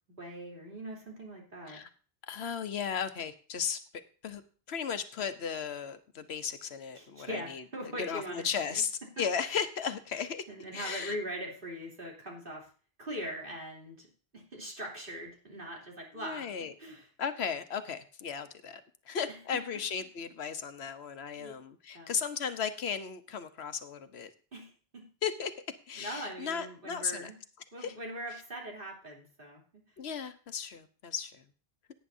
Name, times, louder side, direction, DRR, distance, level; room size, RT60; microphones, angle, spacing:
voice 1, 0.2-1.9 6.9-8.8 10.5-12.7 13.0-14.1 14.3-16.5 16.8-17.1 19.3-19.6 21.4-21.6 21.9-22.1 24.5-25.1 26.0-27.3 27.7-29.8, equal, 60° right, -2 dB, 3.3 m, -41 dB
voice 2, 2.3-3.8 4.2-4.4 4.7-7.6 8.0-8.9 9.2-10.4 10.7-11.2 16.1-16.7 17.2-24.3 25.2-25.5 25.9-27.3 27.8-27.9 30.0-31.4, left 7 dB, 90° left, 10 dB, 1.2 m, -35 dB
17.5 x 9.3 x 2.7 m, 0.39 s
omnidirectional pair, 1.0 m